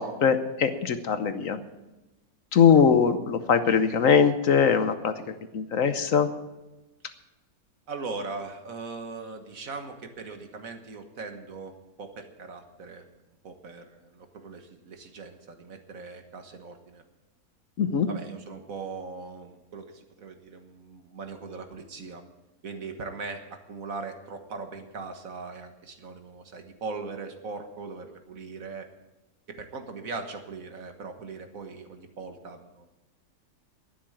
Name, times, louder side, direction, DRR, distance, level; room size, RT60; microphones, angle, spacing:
voice 1, 0.0-1.6 2.5-6.3 17.8-18.1, left 7 dB, 60° left, 10 dB, 1.2 m, -22 dB
voice 2, 7.9-13.0 13.4-17.0 18.1-22.2 22.6-28.9 29.5-33.0, right 4 dB, 60° right, 6 dB, 1.7 m, -40 dB
11.5 x 10.0 x 8.7 m, 1.0 s
omnidirectional pair, 1.6 m